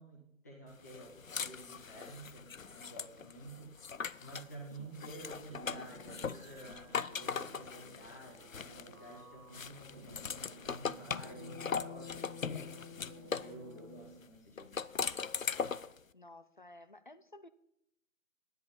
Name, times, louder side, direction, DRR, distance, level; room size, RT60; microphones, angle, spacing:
voice 1, 0.0-3.9 4.2-14.9, right 1 dB, 10° left, -3 dB, 1.0 m, -51 dB
sound 1, 0.9-4.5 5.0-9.1 9.5-13.6 14.6-16.0, left 6 dB, 85° left, 0.6 m, -40 dB
sound 2, 4.7-14.3, left 1 dB, 15° right, 1.1 m, -53 dB
voice 2, 4.8-5.1 16.1-17.5, left 2 dB, 40° left, 13 dB, 0.6 m, -54 dB
12.0 x 10.5 x 5.3 m, 0.79 s
figure-of-eight pair, 155°, 39 cm